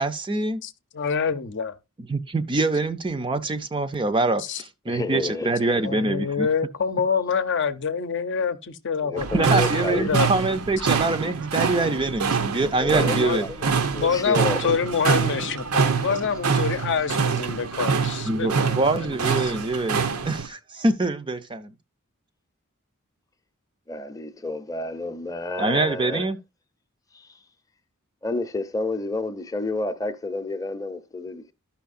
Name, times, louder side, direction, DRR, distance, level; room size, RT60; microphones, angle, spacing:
voice 1, 0.0-0.6 2.1-6.5 9.3-13.5 18.2-21.7 25.6-26.4, right 2 dB, 20° right, 0.5 m, -25 dB
voice 2, 0.6-1.8 4.4-4.6 5.8-9.6 9.9-10.3 13.2-13.4 13.9-19.5, left 6 dB, 55° left, 0.7 m, -26 dB
voice 3, 4.9-5.5 9.0-10.1 12.8-14.7 16.1-16.3 23.9-26.3 27.1-27.3 28.2-31.4, left 2 dB, 15° left, 0.7 m, -30 dB
sound 1, 9.2-20.5, right 5 dB, 80° right, 0.8 m, -25 dB
13.0 x 5.7 x 2.5 m
head